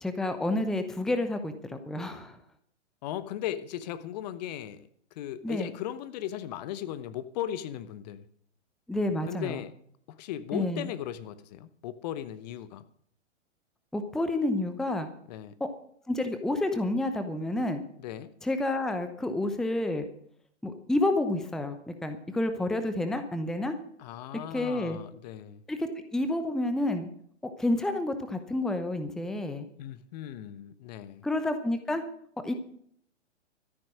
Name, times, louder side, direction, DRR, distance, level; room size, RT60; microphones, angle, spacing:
voice 1, 0.0-2.4 5.4-5.7 8.9-9.7 10.5-10.9 13.9-15.1 15.6-15.7 16.1-17.8 18.4-20.1 20.6-23.8 24.5-25.0 25.7-27.1 27.4-29.7 31.2-32.0 32.4-32.5, left 1 dB, ahead, 0.8 m, -29 dB
voice 2, 3.0-8.3 9.3-9.7 10.1-12.8 15.3-15.6 18.0-18.3 24.0-25.6 29.8-31.2, left 11 dB, 35° left, 0.9 m, -37 dB
13.5 x 10.5 x 6.1 m
figure-of-eight pair, 115°, 36 cm